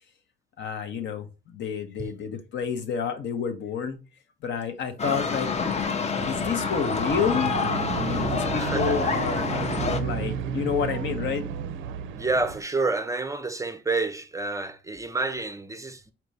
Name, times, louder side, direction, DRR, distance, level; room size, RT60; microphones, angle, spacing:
voice 1, 0.6-4.0 4.4-5.5 6.3-7.5 8.0-11.5, left 7 dB, 65° left, 0.8 m, -29 dB
sound 1, 5.0-10.0, left 5 dB, 35° left, 0.5 m, -28 dB
sound 2, 6.2-12.6, right 7 dB, 80° right, 0.4 m, -32 dB
voice 2, 8.5-9.2 12.1-16.1, right 3 dB, 15° right, 0.4 m, -29 dB
4.3 x 2.6 x 3.2 m
cardioid pair, 90°, 20 cm